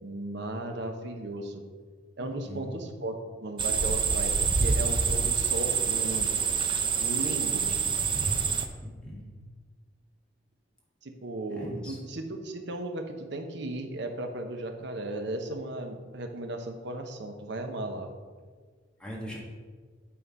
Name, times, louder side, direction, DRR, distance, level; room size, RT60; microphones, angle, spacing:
voice 1, 0.0-1.6 2.2-6.3 7.0-7.7 11.0-18.1, right 1 dB, 65° right, 5 dB, 0.9 m, -36 dB
voice 2, 2.5-2.8 7.5-7.7 8.8-9.4 11.5-12.0 19.0-19.4, equal, 5° left, -4 dB, 1.6 m, -40 dB
sound 1, 3.6-8.7, right 5 dB, 25° right, 0.5 m, -26 dB
8.5 x 3.8 x 5.4 m, 1.5 s
head